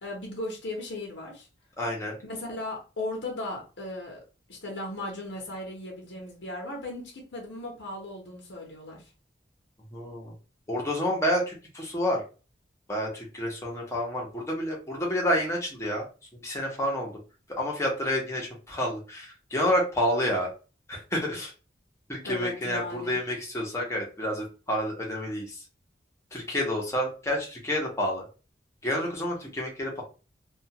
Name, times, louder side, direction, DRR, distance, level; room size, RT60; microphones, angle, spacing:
voice 1, 0.0-1.5 2.2-4.2 4.5-9.0 22.2-23.2, left 1 dB, 80° left, 0.9 m, -37 dB
voice 2, 1.8-2.2 9.9-10.3 10.7-12.2 12.9-16.0 16.3-17.1 17.6-20.5 20.9-21.5 22.1-25.6 26.3-28.2 28.8-30.0, equal, 15° left, 0.8 m, -29 dB
2.4 x 2.3 x 2.8 m
head